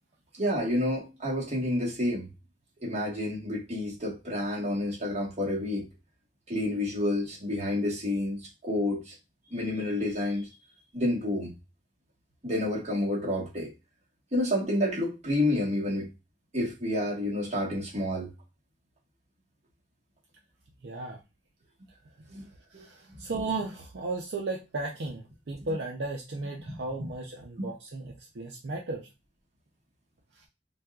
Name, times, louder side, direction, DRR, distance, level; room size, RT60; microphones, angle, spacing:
voice 1, 0.4-2.3 2.8-5.9 6.5-9.1 9.5-10.5 10.9-11.5 12.4-13.7 14.3-16.1 16.5-18.3 22.3-22.4 22.7-22.8 26.7-26.8 27.6-27.7, left 1 dB, 40° right, 1.3 m, -29 dB
voice 2, 20.8-21.2 22.7-29.1 30.4-30.5, right 3 dB, 70° right, 0.5 m, -35 dB
4.0 x 2.3 x 2.3 m
head